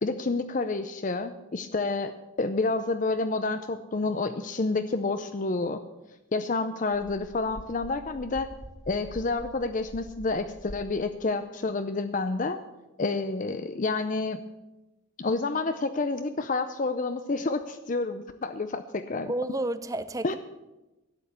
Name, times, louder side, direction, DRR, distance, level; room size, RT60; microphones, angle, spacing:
voice 1, 0.0-5.8 6.3-8.5 8.9-12.6 13.0-14.4 15.2-19.3 20.2-20.4, left 3 dB, 40° left, 9 dB, 0.6 m, -29 dB
sound 1, 6.9-10.9, equal, 20° left, 1.2 m, -45 dB
voice 2, 19.3-20.3, right 1 dB, 15° right, 13 dB, 0.5 m, -30 dB
12.0 x 8.9 x 8.4 m, 1.0 s
head